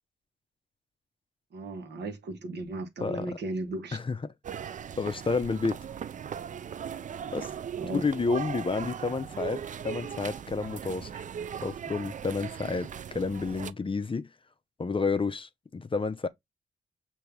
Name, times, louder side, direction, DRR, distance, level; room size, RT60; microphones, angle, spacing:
voice 1, 1.5-4.0 4.6-4.7 7.8-8.0, right 2 dB, 70° right, 1.1 m, -36 dB
voice 2, 3.0-3.4 3.9-4.3 5.0-5.9 7.3-7.5 7.9-11.2 11.6-14.3 14.8-16.3, left 4 dB, 30° left, 0.5 m, -30 dB
sound 1, 4.4-13.7, right 8 dB, 45° right, 0.4 m, -38 dB
5.7 x 2.7 x 3.3 m
supercardioid pair, 50°, 18 cm